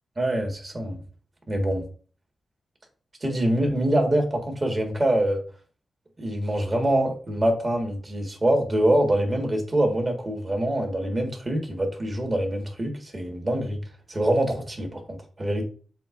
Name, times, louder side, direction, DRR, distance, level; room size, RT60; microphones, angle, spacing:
voice 1, 0.2-1.0 1.5-1.9 3.2-5.4 6.2-13.8 14.1-15.6, right 1 dB, 35° right, 2 dB, 1.6 m, -25 dB
7.5 x 2.5 x 2.5 m, 0.41 s
cardioid pair, 55°, 0 cm